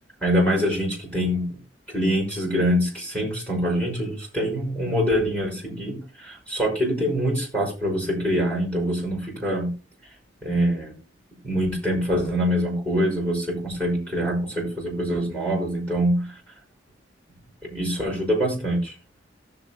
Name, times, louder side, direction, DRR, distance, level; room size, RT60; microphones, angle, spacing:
voice 1, 0.2-1.6 1.9-9.7 10.4-10.9 11.4-16.2 17.6-18.9, equal, 10° left, -1 dB, 5.9 m, -24 dB
18.5 x 7.5 x 2.3 m, 0.29 s
head